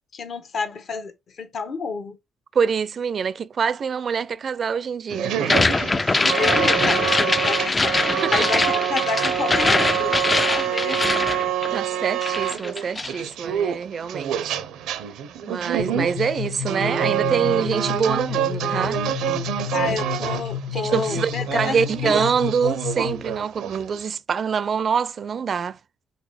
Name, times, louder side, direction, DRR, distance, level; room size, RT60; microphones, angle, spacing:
voice 1, 0.1-2.2 6.3-11.3 15.4-15.5 19.7-22.3, left 5 dB, 60° left, 1.1 m, -30 dB
voice 2, 2.5-5.4 6.4-6.6 8.2-8.3 11.7-14.6 15.5-19.0 19.5-19.6 20.7-25.8, right 6 dB, 50° right, 0.4 m, -25 dB
sound 1, 5.1-24.1, right 10 dB, 90° right, 0.6 m, -27 dB
sound 2, 5.4-12.0 12.2-13.2, left 3 dB, 20° left, 0.3 m, -22 dB
sound 3, 15.8-23.3, left 8 dB, 85° left, 0.9 m, -31 dB
4.1 x 4.1 x 3.2 m
cardioid pair, 90°, 0 cm